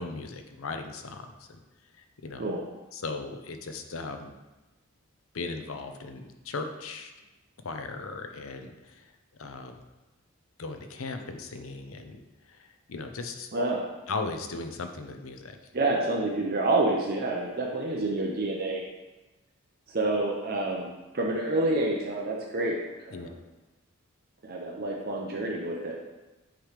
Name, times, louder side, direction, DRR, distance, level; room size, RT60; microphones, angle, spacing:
voice 1, 0.0-1.6 2.0-2.4 2.9-4.3 5.3-7.1 7.6-9.1 9.4-9.8 10.6-12.2 12.5-13.5 14.1-15.6 23.1-23.3, left 3 dB, 75° left, 6 dB, 0.7 m, -37 dB
voice 2, 13.5-13.9 15.7-18.8 19.9-20.9 21.1-22.8 23.1-23.3 24.4-26.0, right 2 dB, 45° right, -1 dB, 0.7 m, -28 dB
9.1 x 3.2 x 5.0 m, 1.1 s
head